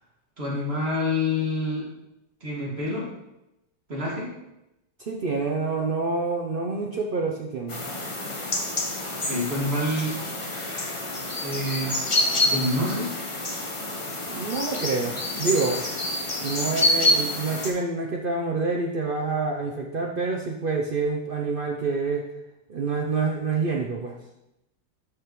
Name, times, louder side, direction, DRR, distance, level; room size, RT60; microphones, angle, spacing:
voice 1, 0.4-1.8 2.4-3.1 3.9-4.3 9.3-10.1 11.4-13.1, left 1 dB, 35° right, -5 dB, 2.4 m, -27 dB
voice 2, 5.0-7.9 14.3-15.9 16.4-22.3 22.7-24.2, right 4 dB, 70° right, 0 dB, 0.5 m, -27 dB
sound 1, 7.7-17.7, left 1 dB, 30° left, 0.6 m, -27 dB
12.5 x 5.1 x 3.1 m, 0.90 s
omnidirectional pair, 1.9 m